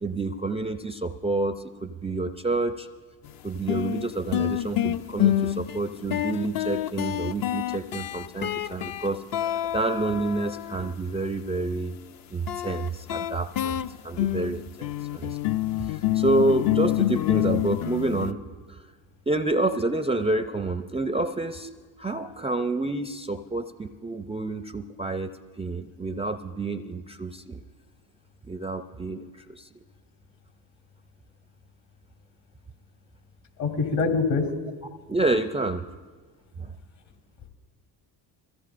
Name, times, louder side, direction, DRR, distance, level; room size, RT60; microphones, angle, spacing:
voice 1, 0.0-2.9 3.4-11.9 12.3-15.4 15.8-18.4 18.7-18.8 19.3-21.7 22.0-25.3 25.6-27.6 28.4-29.7 35.1-35.9 36.6-36.7, right 2 dB, 15° right, 10 dB, 0.4 m, -28 dB
sound 1, 3.2-3.3 3.7-10.9 12.5-18.3, left 13 dB, 45° left, 0.5 m, -27 dB
voice 2, 33.6-34.5, left 4 dB, 65° left, 3 dB, 3.4 m, -24 dB
23.0 x 15.5 x 2.5 m, 1.4 s
hypercardioid pair, 60°, 48 cm